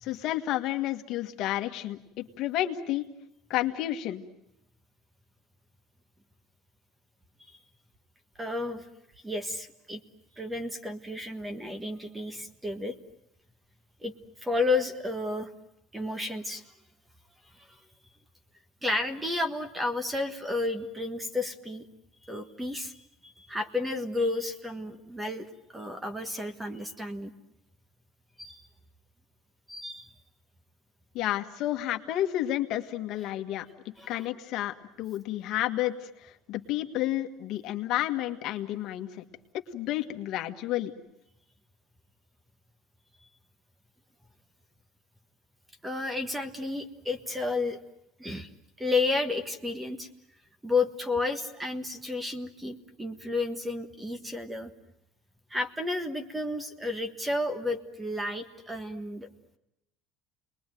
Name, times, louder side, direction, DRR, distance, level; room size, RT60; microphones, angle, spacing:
voice 1, 0.0-3.0 3.5-4.2 31.1-33.7 34.1-39.2 39.7-40.9, left 14 dB, 50° left, 6 dB, 1.7 m, -31 dB
voice 2, 8.4-8.8 9.2-10.0 10.4-13.0 14.0-14.1 14.4-15.5 15.9-16.6 18.8-21.9 22.2-27.3 28.4-28.6 29.7-30.1 34.0-34.3 45.8-47.8 48.2-48.5 48.8-50.1 50.6-54.7 55.5-59.3, left 2 dB, 10° right, 9 dB, 1.5 m, -32 dB
29.5 x 21.0 x 9.2 m, 0.84 s
cardioid pair, 155°, 0 cm